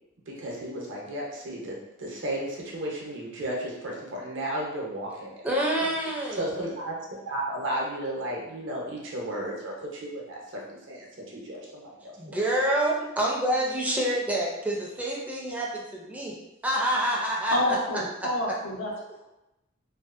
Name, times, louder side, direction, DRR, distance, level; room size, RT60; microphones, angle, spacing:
voice 1, 0.3-5.5 6.4-7.0 7.3-10.6 10.9-12.4, right 1 dB, 65° right, -2 dB, 0.7 m, -34 dB
voice 2, 5.4-6.5 12.2-16.3 16.6-17.8 18.2-18.3, right 1 dB, 10° right, -3 dB, 0.4 m, -27 dB
voice 3, 17.5-19.2, left 1 dB, 85° left, -2 dB, 0.7 m, -28 dB
2.6 x 2.3 x 2.4 m, 0.93 s
head